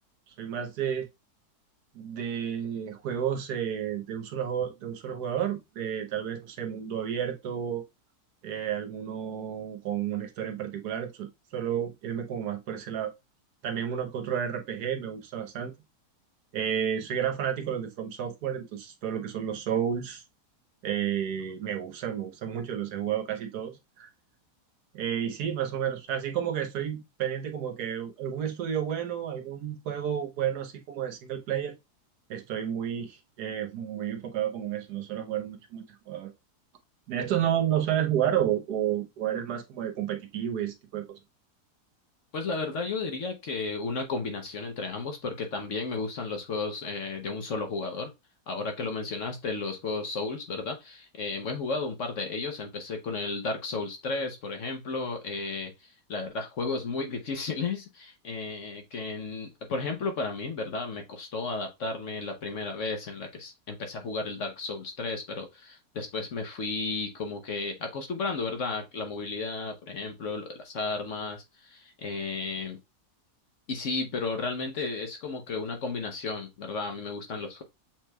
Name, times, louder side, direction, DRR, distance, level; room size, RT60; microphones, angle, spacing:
voice 1, 0.3-1.1 1.9-7.9 8.4-13.1 13.6-15.7 16.5-20.2 20.8-24.1 24.9-31.8 32.3-36.3 37.1-41.0, right 9 dB, 75° right, 1.3 m, -31 dB
voice 2, 42.3-48.1 48.5-72.8 73.7-77.6, left 3 dB, 55° left, 1.0 m, -33 dB
7.4 x 3.1 x 2.2 m
omnidirectional pair, 1.8 m